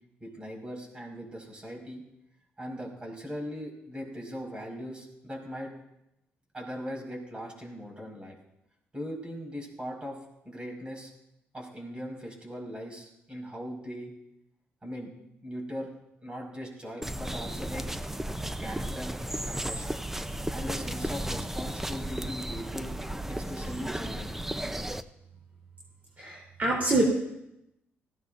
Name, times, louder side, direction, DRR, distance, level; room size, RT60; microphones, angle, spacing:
voice 1, 0.2-2.0 2.6-5.7 6.5-8.4 8.9-10.2 10.5-11.1 11.5-14.1 14.8-15.1 15.4-15.9 16.2-17.9 18.6-19.1 19.4-20.0 20.5-22.9 23.3-24.4, equal, 25° right, 1 dB, 5.3 m, -39 dB
sound 1, 17.0-25.0, right 1 dB, 10° right, 0.7 m, -34 dB
voice 2, 26.2-27.0, right 2 dB, 40° right, -3 dB, 3.6 m, -26 dB
20.0 x 16.0 x 2.6 m, 0.85 s
cardioid pair, 90°, 4 cm